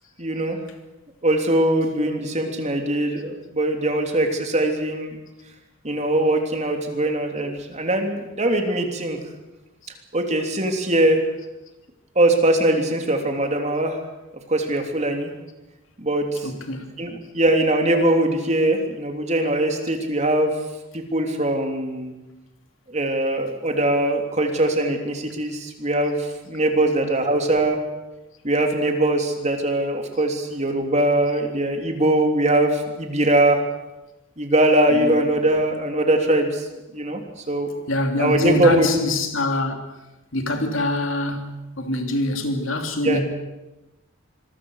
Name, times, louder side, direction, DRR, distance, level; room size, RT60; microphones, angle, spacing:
voice 1, 0.2-0.6 1.2-5.1 5.8-9.2 10.1-11.2 12.1-14.0 14.5-15.3 16.0-16.5 17.0-20.6 20.9-22.1 22.9-27.8 28.4-33.6 34.4-37.2 37.5-37.7 38.2-38.9 43.0-43.2, right 1 dB, 35° right, 3.3 m, -21 dB
voice 2, 16.4-16.9 34.9-35.2 37.9-39.8 40.3-43.2, left 1 dB, 70° left, 3.1 m, -24 dB
26.0 x 22.0 x 6.6 m
head